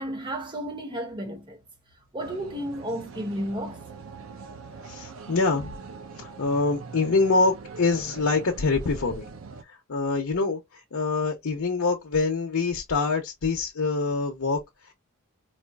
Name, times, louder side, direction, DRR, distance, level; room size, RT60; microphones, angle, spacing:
voice 1, 0.0-1.6 2.1-3.8, equal, 25° right, 1.2 m, -32 dB
sound 1, 2.2-9.6, right 4 dB, 70° right, 0.6 m, -43 dB
voice 2, 4.8-5.7 6.2-9.3 9.7-14.9, left 3 dB, 90° left, 0.8 m, -25 dB
4.2 x 2.3 x 2.3 m
head